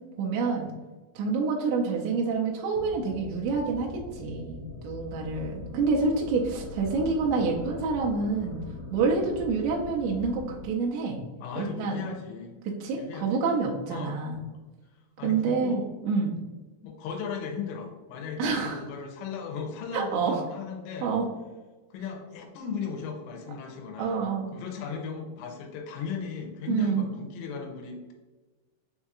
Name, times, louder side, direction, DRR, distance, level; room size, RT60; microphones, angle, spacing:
voice 1, 0.2-0.7 1.2-8.6 8.9-11.2 11.6-12.0 12.8-14.4 15.2-16.4 18.4-18.8 19.9-20.4 21.0-21.3 24.0-24.6 26.7-27.1, right 4 dB, 85° right, -1 dB, 2.8 m, -27 dB
sound 1, 2.7-10.7, left 2 dB, 65° left, 2.5 m, -42 dB
voice 2, 11.4-12.6 12.9-13.4 13.9-14.2 15.2-15.8 16.8-21.1 21.9-24.2 24.5-28.1, left 6 dB, 85° left, 2 dB, 2.9 m, -36 dB
6.8 x 2.7 x 2.3 m, 1.2 s
omnidirectional pair, 5.1 m